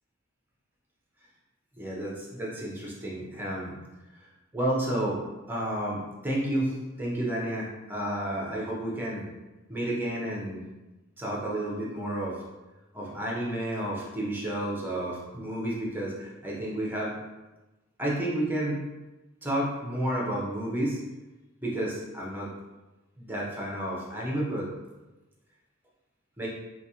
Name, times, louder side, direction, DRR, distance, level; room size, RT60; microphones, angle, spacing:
voice 1, 1.8-3.7 4.5-5.2 5.5-6.7 7.0-9.3 9.7-10.6 11.2-12.4 12.9-17.1 18.0-18.8 19.4-21.0 21.6-22.5 23.2-24.7 26.4-26.5, right 1 dB, 10° right, -4 dB, 0.7 m, -31 dB
4.0 x 2.4 x 2.8 m, 1.1 s
head